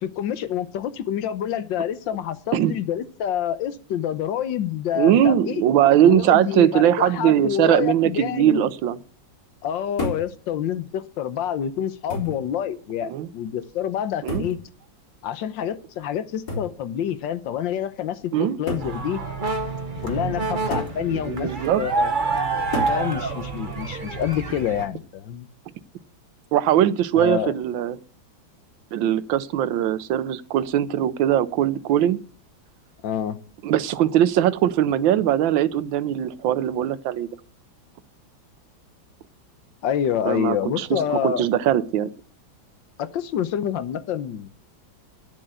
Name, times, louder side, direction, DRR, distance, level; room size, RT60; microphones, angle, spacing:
voice 1, 0.0-5.6 6.0-8.7 9.6-14.6 15.2-19.2 20.0-22.1 22.9-25.5 27.1-27.5 33.0-33.4 39.8-41.4 43.0-44.5, left 9 dB, 70° left, 1.5 m, -27 dB
voice 2, 5.0-9.0 13.1-13.3 14.2-14.4 18.3-18.6 21.1-21.8 26.5-28.0 28.9-32.2 33.6-37.3 40.3-42.1, right 11 dB, 75° right, 1.5 m, -20 dB
sound 1, 10.0-10.3 11.4-11.5 12.1-12.5 14.3-14.6 16.5-16.8 17.8-17.9 18.7-19.0 20.7-21.0 22.7-23.0 24.6-25.0, left 1 dB, 50° left, 4.3 m, -30 dB
sound 2, 18.8-24.9, right 3 dB, 30° right, 1.3 m, -27 dB
10.0 x 7.6 x 8.0 m
omnidirectional pair, 2.2 m